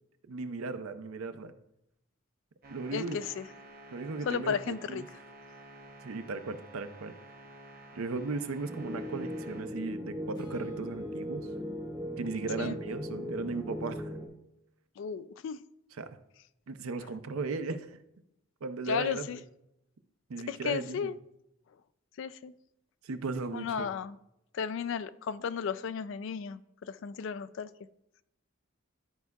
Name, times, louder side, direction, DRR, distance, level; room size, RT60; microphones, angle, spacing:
voice 1, 0.3-1.5 2.7-3.2 3.9-5.1 6.0-7.1 7.9-11.5 12.2-14.1 16.0-16.1 16.7-18.0 18.6-19.4 20.3-21.1 23.0-23.9, right 3 dB, 85° right, 0.5 m, -36 dB
sound 1, 2.6-9.6, right 1 dB, 45° right, 0.7 m, -51 dB
voice 2, 2.9-3.4 4.3-5.0 12.6-12.8 15.0-15.6 18.9-19.4 20.5-21.2 22.2-22.5 23.5-24.2 24.5-27.7, left 7 dB, 65° left, 0.3 m, -34 dB
sound 2, 8.7-14.3, left 1 dB, 10° right, 0.7 m, -38 dB
Acoustic guitar / Strum, 10.3-13.5, equal, 20° left, 1.1 m, -55 dB
11.5 x 4.6 x 2.3 m
head